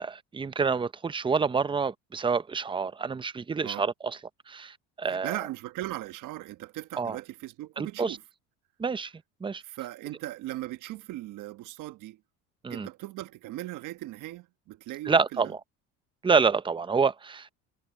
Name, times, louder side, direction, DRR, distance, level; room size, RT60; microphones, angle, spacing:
voice 1, 0.0-4.2 4.5-5.4 7.0-7.2 7.8-8.2 8.8-9.1 9.4-9.6 12.6-12.9 15.1-15.6 16.2-17.5, right 5 dB, 15° right, 0.7 m, -27 dB
voice 2, 5.1-8.2 9.6-12.2 12.7-15.5, right 16 dB, 60° right, 1.3 m, -38 dB
supercardioid pair, 115°, 35 cm